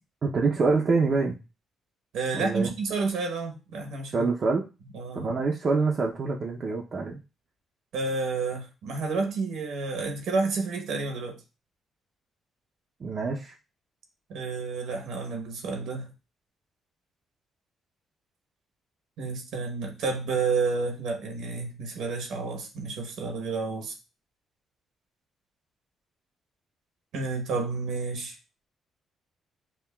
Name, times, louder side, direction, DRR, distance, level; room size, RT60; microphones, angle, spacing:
voice 1, 0.2-1.4 2.3-2.7 4.1-4.7 5.1-7.2 13.0-13.5, right 4 dB, 50° right, -1 dB, 0.5 m, -26 dB
voice 2, 2.1-4.3 4.9-5.3 7.9-11.4 14.3-16.1 19.2-24.0 27.1-28.4, right 4 dB, 80° right, 4 dB, 0.9 m, -30 dB
5.6 x 2.2 x 2.2 m, 0.30 s
cardioid pair, 90°, 0 cm